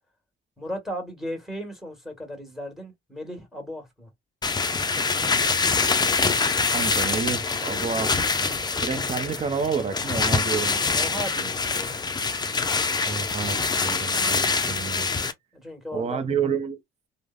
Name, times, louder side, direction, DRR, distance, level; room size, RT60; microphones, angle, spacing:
voice 1, 0.6-4.1 10.9-12.1 15.5-16.4, equal, ahead, 1.5 m, -36 dB
sound 1, 4.4-15.3, left 4 dB, 20° left, 0.4 m, -25 dB
voice 2, 6.7-8.4 8.8-11.1 11.4-11.5 13.0-15.1 15.9-16.8, right 6 dB, 35° right, 0.6 m, -29 dB
3.2 x 2.1 x 2.4 m
cardioid pair, 90°, 20 cm